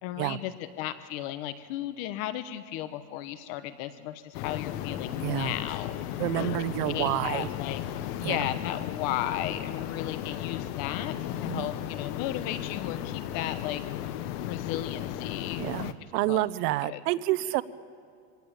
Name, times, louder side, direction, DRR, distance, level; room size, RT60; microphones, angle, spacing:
voice 1, 0.0-6.0 6.6-7.8 8.2-14.1 14.4-15.9 16.3-16.4 16.8-17.0, left 12 dB, 60° left, 12 dB, 1.1 m, -35 dB
sound 1, 4.3-15.9, left 11 dB, 90° left, 1.2 m, -35 dB
voice 2, 5.2-5.5 6.2-7.5 8.2-8.5 11.4-11.7 15.6-17.6, right 17 dB, 85° right, 16 dB, 0.9 m, -29 dB
24.5 x 17.5 x 8.7 m, 2.3 s
cardioid pair, 165°, 46 cm